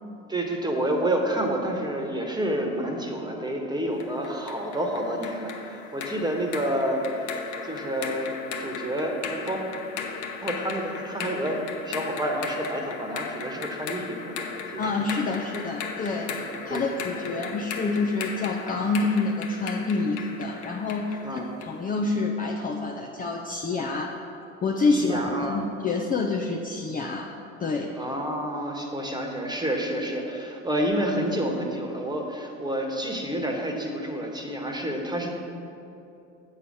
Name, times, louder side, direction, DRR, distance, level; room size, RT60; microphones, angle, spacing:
voice 1, 0.3-7.3 7.6-9.7 10.4-15.7 16.3-16.4 16.7-16.9 17.3-17.5 21.2-21.6 24.9-25.6 27.9-35.3, right 1 dB, 10° right, 2 dB, 1.4 m, -29 dB
sound 1, 4.0-21.8, left 6 dB, 70° left, 1.1 m, -37 dB
voice 2, 14.8-24.2 24.6-27.3 27.6-27.9, left 3 dB, 20° left, 0 dB, 0.7 m, -27 dB
7.9 x 5.6 x 6.5 m, 2.8 s
hypercardioid pair, 75°, 37 cm